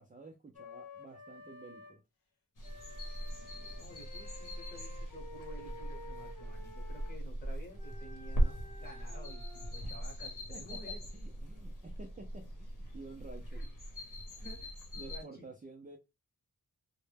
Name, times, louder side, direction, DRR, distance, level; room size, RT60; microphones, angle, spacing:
voice 1, 0.0-2.0 10.5-13.6 15.0-16.0, right 3 dB, 25° right, 0.4 m, -51 dB
Wind instrument woodwind instrument, 0.5-1.9 2.6-7.2 7.8-9.7, left 2 dB, 90° left, 0.7 m, -52 dB
sound 1, 2.6-15.2, equal, 60° left, 0.9 m, -40 dB
voice 2, 3.3-11.0 13.5-13.7 14.4-15.5, equal, 25° left, 0.9 m, -53 dB
2.1 x 2.1 x 3.2 m
wide cardioid pair, 95°, 35 cm